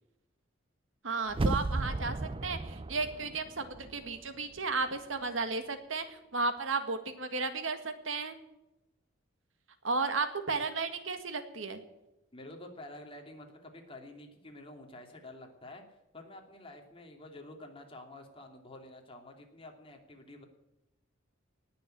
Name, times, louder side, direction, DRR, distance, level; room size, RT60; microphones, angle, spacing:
voice 1, 1.0-2.2 2.4-8.4 9.8-11.8, right 4 dB, 85° right, 8 dB, 1.9 m, -34 dB
sound 1, 1.3-4.2 4.6-4.7, right 2 dB, 30° right, 0.5 m, -34 dB
voice 2, 12.3-15.8 16.1-20.4, left 1 dB, 30° left, 2 dB, 2.8 m, -49 dB
19.0 x 7.0 x 8.9 m, 0.95 s
head